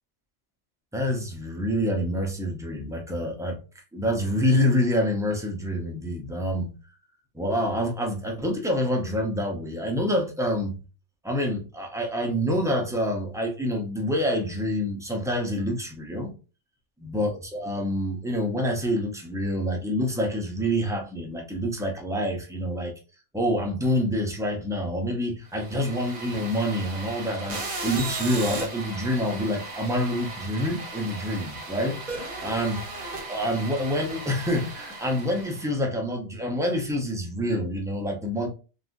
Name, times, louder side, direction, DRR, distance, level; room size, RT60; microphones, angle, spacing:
voice 1, 0.9-3.6 3.9-6.7 7.3-10.8 11.2-16.3 17.0-22.9 23.3-38.5, equal, 5° right, 0.4 m, -27 dB
sound 1, 25.5-35.7, right 3 dB, 40° right, 0.9 m, -36 dB
3.6 x 2.4 x 2.6 m
omnidirectional pair, 1.2 m